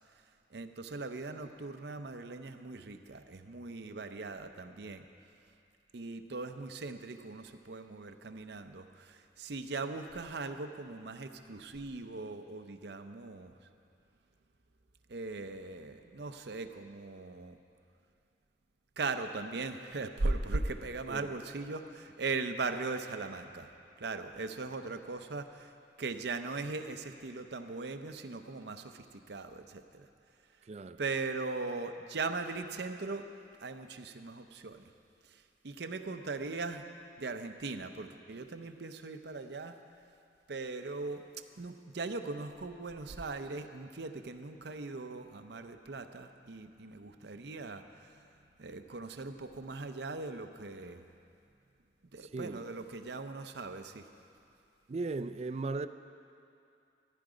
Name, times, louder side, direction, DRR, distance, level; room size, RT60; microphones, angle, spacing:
voice 1, 0.5-5.0 5.9-13.5 15.1-17.6 19.0-23.7 24.0-25.7 26.0-30.1 31.0-33.3 33.6-34.8 35.2-36.8 37.2-39.8 40.5-41.3 41.6-48.2 48.6-51.0 52.1-54.1, right 3 dB, 70° right, 8 dB, 0.7 m, -39 dB
voice 2, 30.7-31.0 52.2-52.6 54.9-55.9, right 3 dB, 35° right, 11 dB, 0.3 m, -37 dB
14.0 x 11.0 x 5.0 m, 2.5 s
head